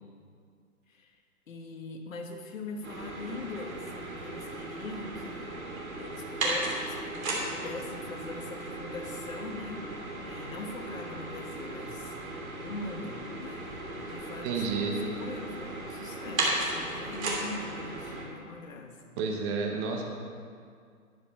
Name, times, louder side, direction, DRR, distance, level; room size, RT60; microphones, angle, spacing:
voice 1, 1.5-5.6 6.0-7.0 7.3-12.2 12.6-19.1, left 3 dB, 60° left, 4 dB, 1.6 m, -42 dB
sound 1, 2.8-18.2, right 2 dB, 65° right, 3.2 m, -36 dB
voice 2, 14.4-14.9 19.2-20.0, right 5 dB, 20° right, 1 dB, 0.9 m, -30 dB
11.5 x 9.8 x 4.5 m, 2.2 s
hypercardioid pair, 140°, 44 cm